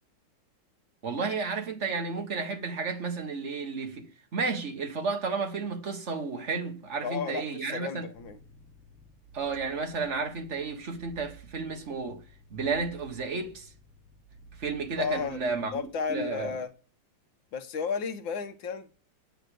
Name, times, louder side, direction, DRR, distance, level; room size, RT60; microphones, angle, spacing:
voice 1, 1.0-8.1 9.3-12.2 12.5-13.7 14.6-15.7 16.1-16.5, right 4 dB, 40° right, 1.7 m, -32 dB
voice 2, 7.0-8.4 15.0-15.4 15.7-16.7 17.5-19.0, left 5 dB, 90° left, 1.8 m, -33 dB
sound 1, 8.1-16.6, right 4 dB, 5° right, 4.8 m, -54 dB
8.9 x 6.7 x 6.5 m
omnidirectional pair, 2.1 m